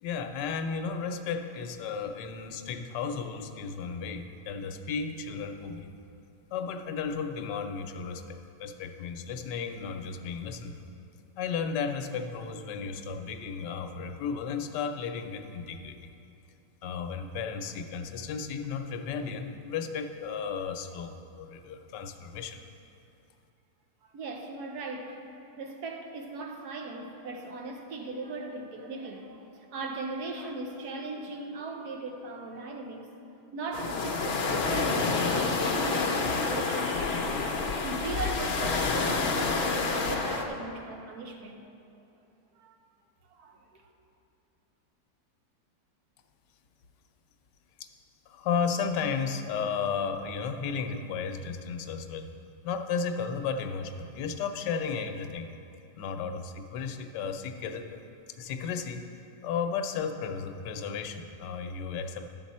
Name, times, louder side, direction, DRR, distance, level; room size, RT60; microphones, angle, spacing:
voice 1, 0.0-5.9 6.5-10.9 11.4-16.1 16.8-22.6 47.8-47.9 48.3-52.3 52.6-55.5 56.0-58.0 58.3-59.1 59.4-62.4, left 6 dB, 85° left, 6 dB, 1.3 m, -34 dB
voice 2, 24.1-25.2 25.6-33.1 33.5-37.2 37.8-41.6 42.5-42.7 43.3-43.8, right 3 dB, 70° right, 3 dB, 1.3 m, -38 dB
sound 1, 33.7-40.4, left 4 dB, 55° left, 0.7 m, -28 dB
11.0 x 7.3 x 4.2 m, 2.7 s
omnidirectional pair, 1.8 m